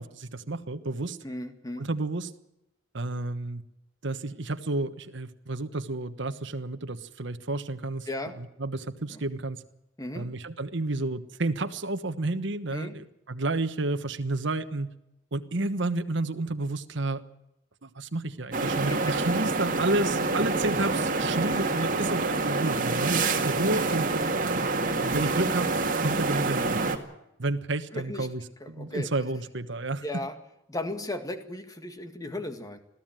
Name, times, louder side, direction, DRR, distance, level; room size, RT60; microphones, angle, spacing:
voice 1, 0.0-1.2 1.8-2.3 2.9-3.6 4.0-8.1 8.4-9.6 10.1-14.9 15.3-17.2 17.8-24.1 25.0-25.7 26.0-27.0 27.4-28.4 28.7-30.0, right 2 dB, 65° right, 9 dB, 1.3 m, -31 dB
voice 2, 1.2-1.9 8.1-8.4 9.1-9.2 10.0-10.3 12.7-13.0 18.9-19.2 27.9-28.3 28.6-29.1 30.0-30.4 30.7-32.8, left 1 dB, 20° left, 8 dB, 2.0 m, -36 dB
sound 1, 18.5-27.0, right 3 dB, 45° right, 2.1 m, -27 dB
21.5 x 14.5 x 9.1 m, 0.85 s
head